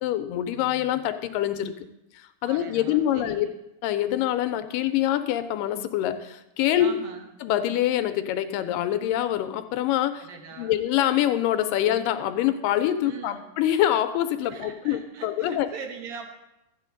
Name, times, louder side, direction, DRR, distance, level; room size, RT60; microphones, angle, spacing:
voice 1, 0.0-1.7 2.2-3.5 3.8-7.0 7.4-10.3 10.6-15.7, left 12 dB, 90° left, 9 dB, 2.3 m, -25 dB
voice 2, 2.4-3.5 6.8-7.3 10.2-10.8 13.0-13.4 14.4-16.3, right 5 dB, 90° right, 4 dB, 3.0 m, -41 dB
12.5 x 9.1 x 3.9 m, 0.88 s
omnidirectional pair, 3.9 m